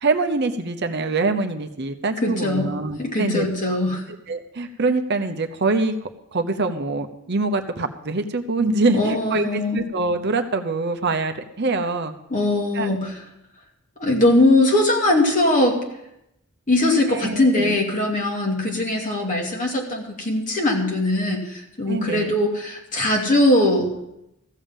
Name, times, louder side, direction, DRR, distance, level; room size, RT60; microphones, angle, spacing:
voice 1, 0.0-3.5 4.3-5.9 6.3-12.1 12.7-12.9 17.1-17.8 21.9-22.3, right 3 dB, 50° right, 6 dB, 0.8 m, -24 dB
voice 2, 2.2-2.7 3.0-4.0 8.9-9.8 12.3-13.1 14.0-15.8 16.7-23.9, left 1 dB, 35° left, 0 dB, 2.5 m, -20 dB
15.0 x 7.1 x 7.3 m, 0.84 s
head